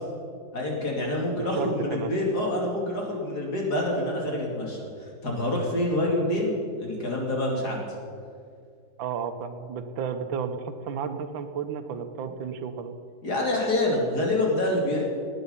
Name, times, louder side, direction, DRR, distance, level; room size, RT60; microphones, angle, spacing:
voice 1, 0.5-7.9 13.2-15.0, left 1 dB, 55° left, -2 dB, 3.2 m, -27 dB
voice 2, 1.5-2.1 9.0-13.0, right 7 dB, 85° right, 8 dB, 1.7 m, -32 dB
18.5 x 9.2 x 5.6 m, 2.3 s
omnidirectional pair, 2.1 m